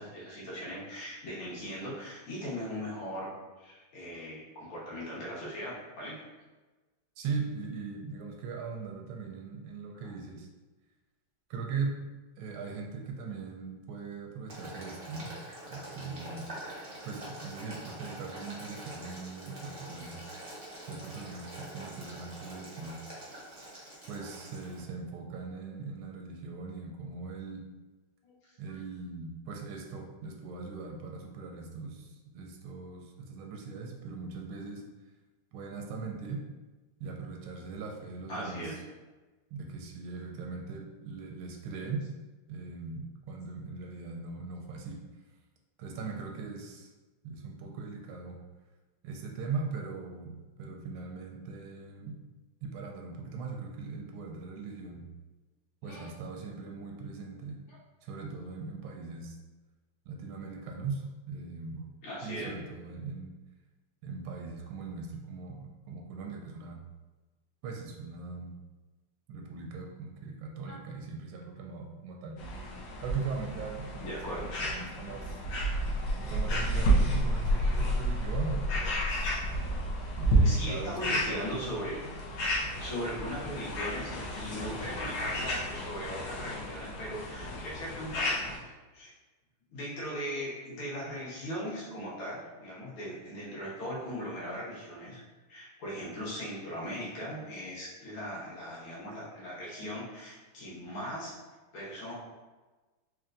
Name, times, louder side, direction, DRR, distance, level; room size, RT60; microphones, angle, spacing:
voice 1, 0.0-3.3 3.6-6.2 10.0-10.1 28.2-28.4 28.7-28.8 38.3-38.7 55.8-56.1 57.7-57.8 62.0-62.6 70.7-70.8 74.0-74.5 80.4-82.0 82.8-89.1 89.7-95.2 95.5-101.3 101.7-102.1, equal, 90° left, -7 dB, 2.0 m, -39 dB
voice 2, 7.2-10.5 11.5-12.0 12.4-15.3 15.7-16.5 17.0-20.2 20.8-23.0 24.1-27.6 28.6-34.8 35.5-36.5 37.0-38.8 39.5-42.1 42.5-45.0 45.8-46.9 47.2-48.4 49.0-52.2 52.6-55.0 55.8-57.6 58.0-59.4 60.1-61.9 62.2-63.3 64.0-66.8 67.6-68.5 69.3-72.4 73.0-75.4 76.2-79.3 80.2-81.4, right 4 dB, 85° right, 1 dB, 1.5 m, -40 dB
Boiling, 14.5-24.8, right 1 dB, 35° right, 0.5 m, -45 dB
sound 1, 72.4-88.6, right 1 dB, 70° left, 1.5 m, -31 dB
4.4 x 3.0 x 2.5 m, 1.2 s
omnidirectional pair, 2.3 m